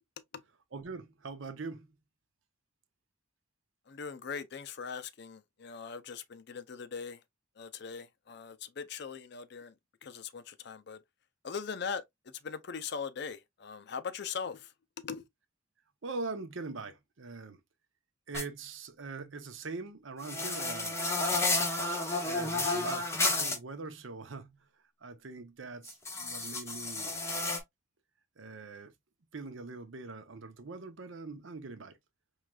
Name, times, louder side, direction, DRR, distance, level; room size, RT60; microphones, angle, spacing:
voice 1, 0.7-2.0 16.0-17.6 18.3-21.0 22.2-24.6 25.0-27.2 28.4-28.9 29.3-32.0, right 3 dB, 65° right, 0.7 m, -42 dB
voice 2, 3.9-7.2 7.6-9.7 10.0-11.0 11.4-12.0 12.4-14.7 15.0-15.3, left 6 dB, 55° left, 0.5 m, -40 dB
sound 1, 18.3-18.4 20.2-23.6 25.9-27.6, left 2 dB, 15° left, 0.8 m, -31 dB
4.8 x 3.1 x 2.3 m
head